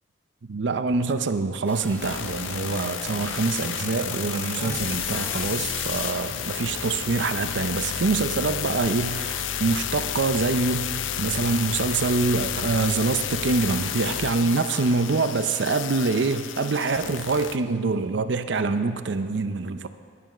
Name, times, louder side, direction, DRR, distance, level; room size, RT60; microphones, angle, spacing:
voice 1, 0.4-19.9, right 3 dB, 70° right, 0.5 m, -25 dB
sound 1, 1.7-6.9, left 1 dB, 10° left, 1.6 m, -39 dB
sound 2, 2.0-17.6, left 9 dB, 85° left, 0.5 m, -31 dB
11.5 x 11.0 x 6.0 m
head